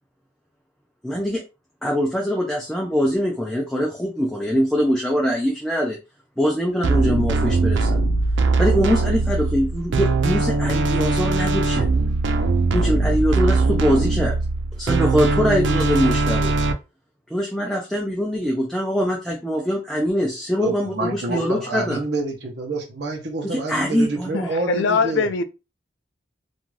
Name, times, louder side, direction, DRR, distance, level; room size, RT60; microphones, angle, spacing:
voice 1, 1.0-1.4 1.8-6.0 6.4-8.0 8.6-11.9 12.7-14.3 14.8-16.5 17.3-22.0 23.4-24.5, equal, ahead, 0.4 m, -23 dB
sound 1, 6.8-16.7, right 3 dB, 80° right, 0.4 m, -21 dB
voice 2, 20.6-25.3, right 2 dB, 65° right, 0.7 m, -27 dB
voice 3, 24.7-25.4, left 5 dB, 80° left, 0.4 m, -21 dB
2.5 x 2.3 x 3.1 m
head